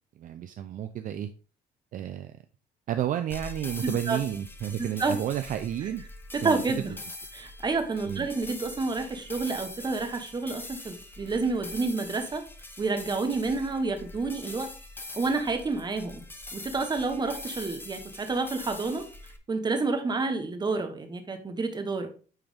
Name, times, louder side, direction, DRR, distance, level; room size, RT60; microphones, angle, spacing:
voice 1, 0.2-1.3 1.9-2.3 2.9-6.0 6.4-6.6 8.0-8.3, right 10 dB, 50° right, 9 dB, 0.5 m, -31 dB
sound 1, 3.3-19.4, left 2 dB, 10° left, 0.8 m, -43 dB
voice 2, 3.8-4.2 4.8-5.2 6.3-6.9 7.3-12.4 12.8-14.7 15.1-16.2 16.5-19.0 19.5-22.1, right 3 dB, 25° right, 7 dB, 1.2 m, -29 dB
9.0 x 3.5 x 3.4 m, 0.38 s
cardioid pair, 110°, 17 cm